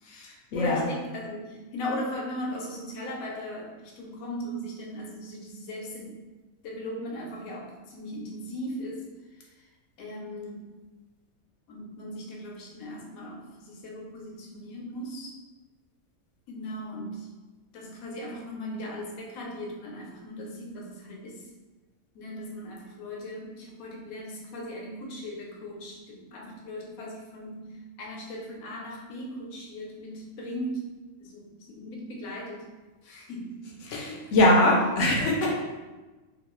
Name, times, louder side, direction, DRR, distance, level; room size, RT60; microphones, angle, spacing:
voice 1, 0.0-6.2 6.6-9.0 9.5-9.7 10.0-10.7 11.7-15.3 16.5-17.3 17.7-21.5 22.1-30.9 31.2-32.6 33.0-33.6 33.8-34.3 34.6-34.9, equal, 90° left, -1 dB, 1.1 m, -38 dB
voice 2, 0.5-0.8 33.9-35.5, left 1 dB, 70° left, -2 dB, 0.8 m, -22 dB
3.0 x 2.3 x 3.0 m, 1.2 s
omnidirectional pair, 1.4 m